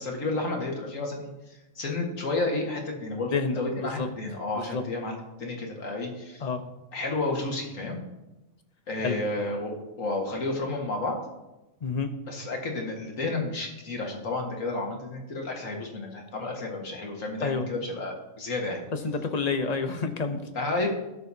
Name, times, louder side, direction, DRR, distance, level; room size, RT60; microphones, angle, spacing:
voice 1, 0.0-6.4 6.9-8.0 8.9-11.2 12.3-18.8 20.5-20.9, left 2 dB, 65° left, 0 dB, 2.0 m, -31 dB
voice 2, 3.3-4.1 4.5-4.8 6.4-6.6 9.0-9.2 11.8-12.1 17.4-17.7 19.0-20.4, left 5 dB, 35° left, 7 dB, 0.7 m, -29 dB
17.5 x 6.7 x 2.8 m, 1.0 s
omnidirectional pair, 1.5 m